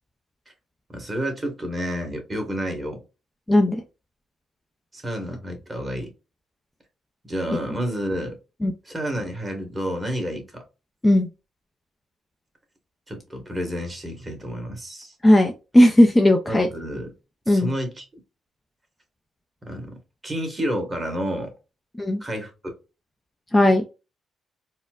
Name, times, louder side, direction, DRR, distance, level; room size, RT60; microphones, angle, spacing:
voice 1, 0.9-3.0 4.9-6.1 7.2-8.4 8.8-10.6 13.1-15.1 16.5-17.1 17.5-18.0 19.6-20.0 20.2-21.5 22.2-22.7, equal, 20° right, 1.4 m, -30 dB
voice 2, 3.5-3.8 8.6-8.7 11.0-11.3 15.2-16.7 17.5-17.7 22.0-22.2 23.5-23.8, left 1 dB, 15° left, 0.5 m, -16 dB
4.2 x 2.0 x 2.4 m
cardioid pair, 90°, 0 cm